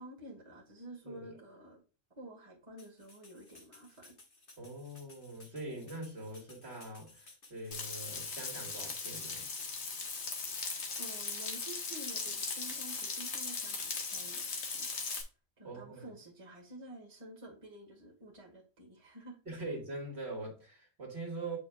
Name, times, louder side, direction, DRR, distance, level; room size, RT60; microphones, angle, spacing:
voice 1, 0.0-1.8 2.1-4.1 11.0-14.9 15.6-19.4, right 1 dB, 25° right, 1.6 m, -50 dB
voice 2, 1.0-1.4 4.6-9.5 15.6-16.1 19.5-21.6, right 2 dB, 60° right, 2.2 m, -43 dB
sound 1, 2.8-14.1, left 2 dB, 45° left, 1.7 m, -57 dB
Frying (food), 7.7-15.2, left 4 dB, 65° left, 1.4 m, -38 dB
8.3 x 5.0 x 2.3 m
omnidirectional pair, 1.3 m